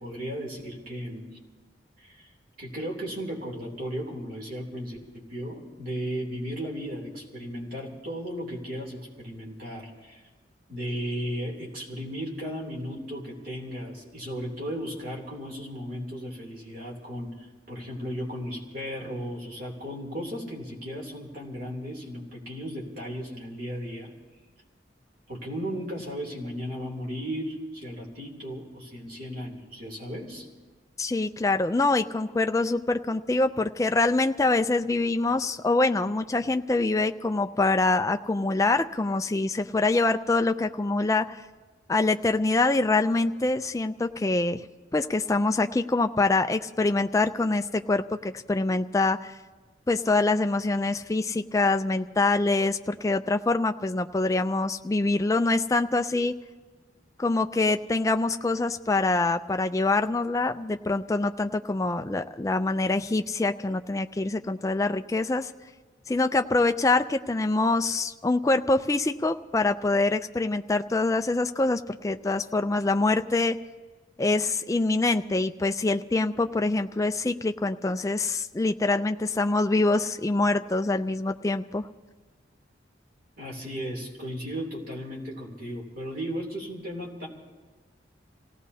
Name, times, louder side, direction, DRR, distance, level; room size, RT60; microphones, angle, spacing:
voice 1, 0.0-1.4 2.0-2.3 2.6-10.2 10.7-24.1 25.3-30.5 83.4-87.3, equal, 50° right, -2 dB, 3.0 m, -35 dB
voice 2, 31.0-41.4 41.9-44.6 44.9-49.3 49.9-56.4 57.2-65.5 66.1-73.6 74.2-81.9, left 2 dB, 15° left, 8 dB, 0.4 m, -25 dB
27.0 x 17.0 x 2.8 m, 1.4 s
head